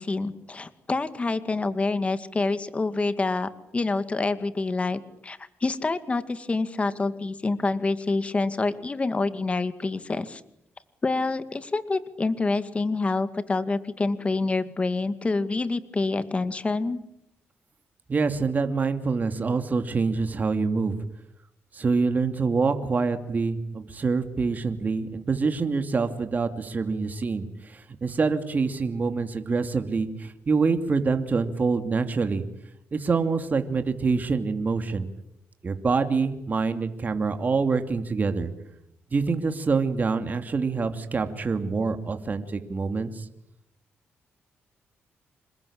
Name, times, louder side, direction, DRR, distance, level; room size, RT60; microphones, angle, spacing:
voice 1, 0.0-10.4 11.0-17.0, left 3 dB, 30° left, 11 dB, 2.1 m, -27 dB
voice 2, 18.1-21.0 21.7-32.4 32.9-35.1 35.6-38.5 39.1-43.3, right 4 dB, 40° right, 7 dB, 2.7 m, -26 dB
27.5 x 22.0 x 8.8 m, 0.79 s
cardioid pair, 85°, 5 cm